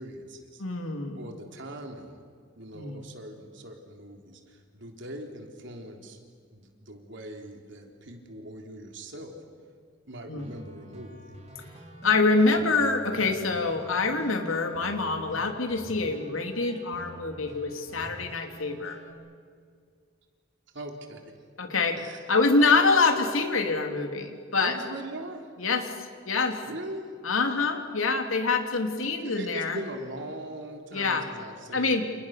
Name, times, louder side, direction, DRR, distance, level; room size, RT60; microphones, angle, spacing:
voice 1, 0.0-0.6 1.2-2.2 2.6-6.2 6.5-9.3 10.1-11.4 20.7-21.3 22.0-22.3 24.6-25.5 26.7-27.1 29.0-32.0, right 1 dB, 65° right, 3 dB, 3.8 m, -41 dB
voice 2, 0.6-1.2 2.7-3.0 10.3-10.5 12.0-19.0 21.6-22.0 22.3-24.7 25.6-26.6 27.2-29.8 30.9-31.2 31.7-32.1, left 3 dB, 85° left, 5 dB, 3.2 m, -25 dB
sound 1, 10.4-19.1, right 1 dB, 35° right, 4.1 m, -47 dB
29.5 x 28.5 x 6.7 m, 2.1 s
head